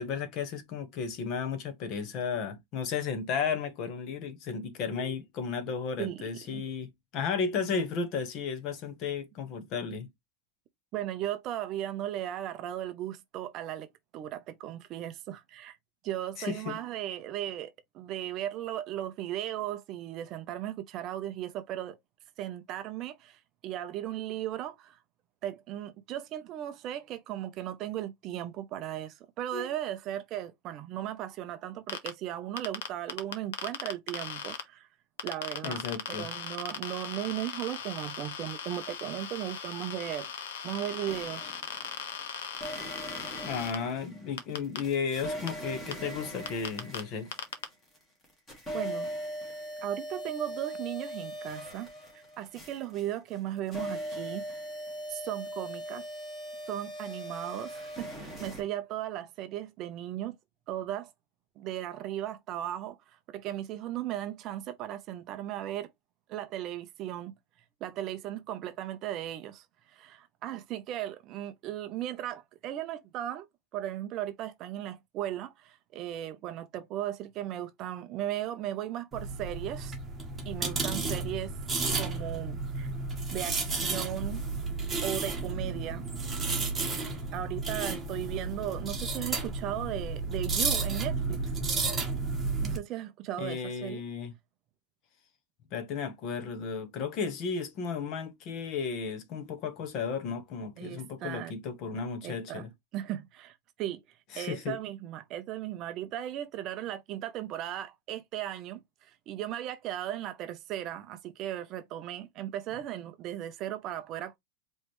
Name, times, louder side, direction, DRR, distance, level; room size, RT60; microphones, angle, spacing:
voice 1, 0.0-10.1 16.4-16.8 29.5-29.7 35.6-36.3 43.4-47.3 93.4-94.3 95.7-102.7 104.3-104.8, left 5 dB, 35° left, 1.1 m, -34 dB
voice 2, 6.0-6.6 10.9-13.9 14.1-15.8 16.0-22.0 22.4-25.0 25.4-34.9 35.2-35.8 36.1-40.3 40.6-41.6 48.7-49.1 49.8-51.9 52.1-54.6 55.1-56.1 56.7-60.4 60.7-61.1 61.6-65.9 66.3-67.3 67.8-73.5 73.7-80.0 80.5-81.5 82.0-82.9 83.3-84.4 85.0-86.0 87.3-91.4 92.6-94.0 100.8-101.5 102.2-102.6 102.9-104.0 104.3-114.4, right 12 dB, 30° right, 0.6 m, -36 dB
sound 1, 31.9-32.1 32.6-34.6 35.2-43.8 44.4-44.8 45.5-45.6 45.9-46.0 46.5-47.0 47.3-47.6, left 8 dB, 80° left, 1.2 m, -38 dB
sound 2, 41.1-42.0 42.5-48.0 48.2-58.6, equal, 10° left, 2.1 m, -40 dB
sound 3, 79.1-92.8, right 3 dB, 10° right, 1.4 m, -32 dB
4.9 x 3.1 x 3.1 m
supercardioid pair, 165°, 0 cm